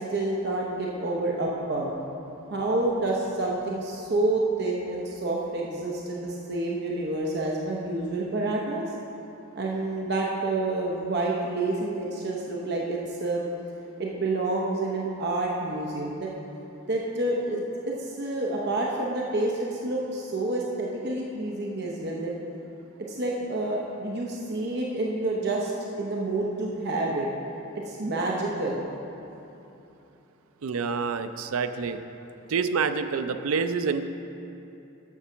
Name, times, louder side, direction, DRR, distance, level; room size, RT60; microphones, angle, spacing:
voice 1, 0.0-2.0 2.5-8.9 9.6-13.4 14.0-16.3 16.9-22.3 23.0-25.7 26.0-27.3 27.7-28.9, right 2 dB, 50° right, -2 dB, 0.8 m, -28 dB
voice 2, 30.6-32.0 32.5-34.1, right 5 dB, 85° right, 9 dB, 0.4 m, -27 dB
7.2 x 6.8 x 6.0 m, 2.9 s
head